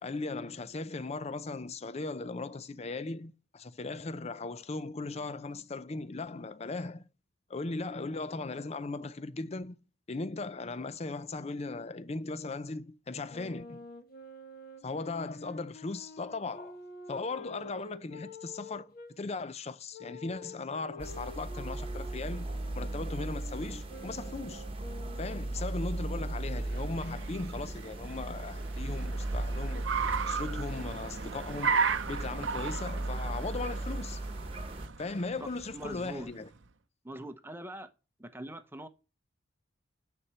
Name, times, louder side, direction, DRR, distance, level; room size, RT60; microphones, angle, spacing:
voice 1, 0.0-7.0 7.5-9.8 10.1-13.8 14.8-16.8 17.1-22.5 22.7-24.7 25.2-29.9 30.3-34.2 35.0-36.5, left 3 dB, 30° left, 0.5 m, -38 dB
Wind instrument woodwind instrument, 13.3-19.1 19.9-25.7, left 2 dB, 50° left, 1.5 m, -48 dB
sound 1, 21.0-34.9, right 2 dB, 30° right, 1.1 m, -37 dB
Car, 26.3-36.6, right 6 dB, 65° right, 0.7 m, -36 dB
voice 2, 35.3-36.3 37.0-37.9 38.2-38.9, right 1 dB, 10° right, 0.7 m, -43 dB
9.6 x 4.3 x 6.9 m
head